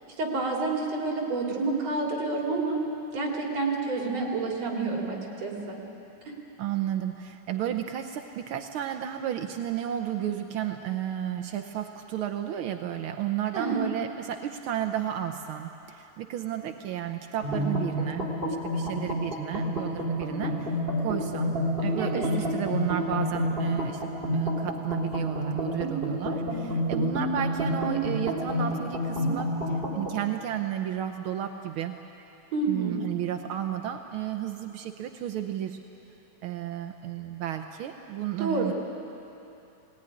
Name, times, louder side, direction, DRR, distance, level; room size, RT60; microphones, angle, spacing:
voice 1, 0.2-2.8 3.1-5.8 6.2-6.3 13.5-13.8 22.0-22.3 32.5-33.0 38.4-38.7, right 3 dB, 60° right, -1 dB, 4.1 m, -29 dB
voice 2, 6.6-18.3 18.6-31.9 32.7-35.8 36.4-38.7, right 10 dB, 80° right, 6 dB, 1.1 m, -32 dB
sound 1, 17.4-30.2, equal, 20° right, 2.9 m, -29 dB
20.0 x 18.5 x 9.9 m, 2.9 s
omnidirectional pair, 3.3 m